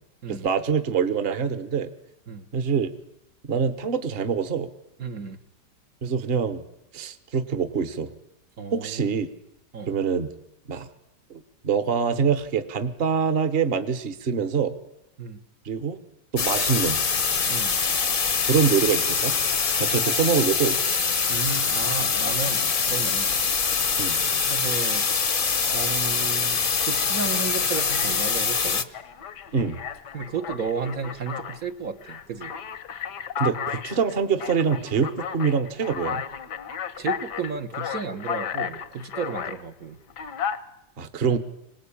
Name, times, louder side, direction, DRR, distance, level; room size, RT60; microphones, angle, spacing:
voice 1, 0.3-1.9 2.5-2.9 3.5-4.7 6.0-6.6 6.9-8.1 8.7-9.3 9.9-10.3 10.7-10.9 11.3-14.7 15.6-16.0 16.3-17.0 18.5-19.3 19.8-20.8 24.0-24.2 29.5-29.8 33.4-36.2 41.0-41.4, right 6 dB, 40° right, 10 dB, 1.3 m, -25 dB
voice 2, 5.0-5.4 8.6-9.1 9.7-10.0 15.2-15.4 17.5-17.8 21.3-23.4 24.5-25.1 25.7-28.9 30.1-32.6 37.0-40.0, right 5 dB, 55° right, 5 dB, 1.6 m, -33 dB
sound 1, 16.4-28.8, left 5 dB, 35° left, 1.0 m, -24 dB
Alarm, 27.1-27.3 27.7-28.4 28.9-31.6 32.0-39.6 40.1-40.6, left 8 dB, 75° left, 1.7 m, -34 dB
26.5 x 19.5 x 8.7 m, 0.86 s
omnidirectional pair, 1.8 m